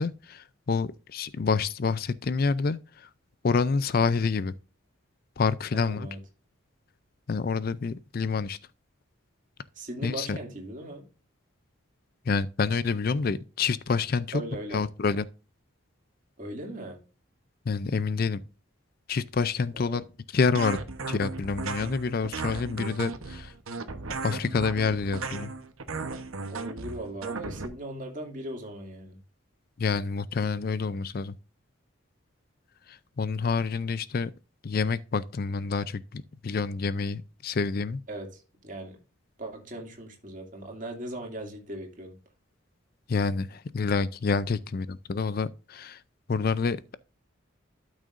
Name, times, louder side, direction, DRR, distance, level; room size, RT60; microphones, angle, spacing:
voice 1, 0.0-3.1 3.4-4.5 5.4-6.1 7.3-8.6 10.0-10.4 12.3-14.4 14.7-15.2 17.7-18.4 19.1-20.0 20.3-20.8 21.1-23.5 24.2-25.5 29.8-31.3 32.9-34.3 34.6-38.0 43.1-46.0 46.3-47.0, left 4 dB, 45° left, 0.4 m, -28 dB
voice 2, 5.7-6.2 9.7-11.0 14.3-14.9 16.4-17.0 19.7-20.0 26.5-29.2 38.1-39.0 39.4-42.2, right 1 dB, 40° right, 2.5 m, -38 dB
sound 1, 20.5-27.7, right 4 dB, 90° right, 1.0 m, -36 dB
12.5 x 6.3 x 2.5 m
head